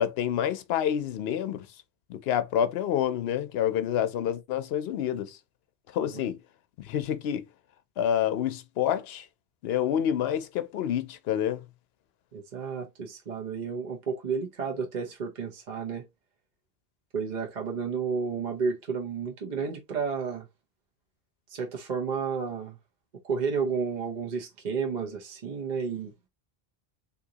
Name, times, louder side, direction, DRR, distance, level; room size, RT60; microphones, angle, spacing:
voice 1, 0.0-1.7 2.1-5.4 5.9-6.4 6.8-7.5 8.0-9.3 9.6-11.6, left 10 dB, 75° left, 0.8 m, -28 dB
voice 2, 12.3-16.0 17.1-20.5 21.5-22.8 23.2-26.1, right 5 dB, 45° right, 0.8 m, -31 dB
3.7 x 2.7 x 2.8 m
omnidirectional pair, 1.1 m